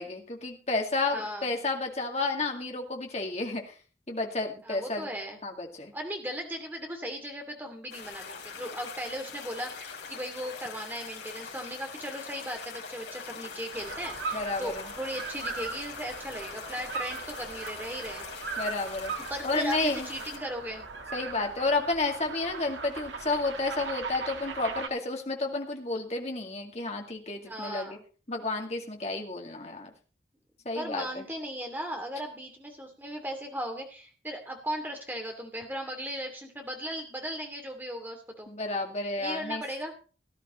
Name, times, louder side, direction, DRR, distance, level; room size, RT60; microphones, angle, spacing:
voice 1, 0.0-3.8 4.1-5.1 5.4-5.9 14.3-14.8 18.6-19.1 19.4-20.1 21.1-28.0 28.3-29.9 30.6-31.3 38.5-39.6, left 3 dB, 35° left, 2 dB, 2.2 m, -31 dB
voice 2, 1.1-1.5 4.6-5.4 5.9-18.2 19.3-20.9 27.4-28.0 30.7-38.5 39.2-39.9, equal, 10° right, 3 dB, 2.8 m, -37 dB
sound 1, 7.9-20.4, left 5 dB, 75° left, 3.7 m, -43 dB
sound 2, 13.7-24.9, right 4 dB, 90° right, 1.7 m, -39 dB
18.0 x 12.0 x 3.2 m, 0.37 s
head